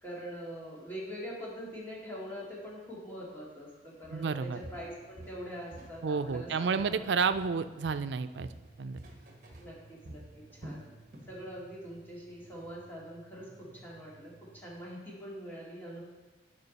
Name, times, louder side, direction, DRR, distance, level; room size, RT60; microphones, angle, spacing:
voice 1, 0.0-7.1 9.6-10.8 11.3-16.0, equal, 10° left, -5 dB, 2.2 m, -44 dB
Walk footsteps, 4.0-4.3 4.6-6.0 6.3-7.6 7.9-11.4 11.7-11.9 12.4-12.5, right 1 dB, 50° right, 1.4 m, -49 dB
voice 2, 4.1-4.6 6.0-8.5 8.8-9.0, right 5 dB, 90° right, 12 dB, 0.4 m, -30 dB
sound 1, 4.3-14.7, right 2 dB, 40° left, 1.6 m, -59 dB
12.0 x 5.1 x 4.1 m, 1.2 s
head